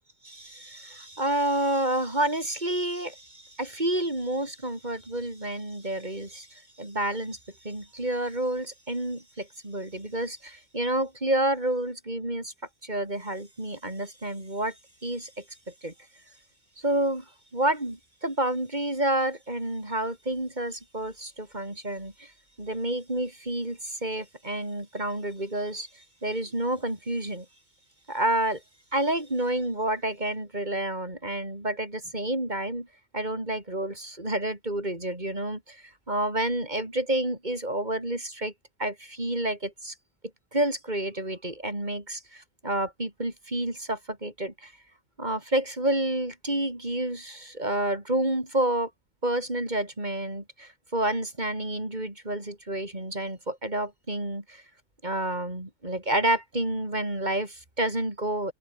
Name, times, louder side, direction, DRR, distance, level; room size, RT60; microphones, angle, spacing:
voice 1, 0.2-7.4 7.6-12.5 12.8-14.7 15.0-15.4 15.8-15.9 16.8-17.2 17.5-22.3 22.6-25.9 26.2-27.4 28.1-28.6 28.9-32.9 33.1-35.8 36.1-38.5 38.8-39.9 40.5-44.7 45.2-48.9 49.2-54.6 55.0-58.5, right 1 dB, 35° right, 5.1 m, -29 dB
open air
omnidirectional pair, 1.3 m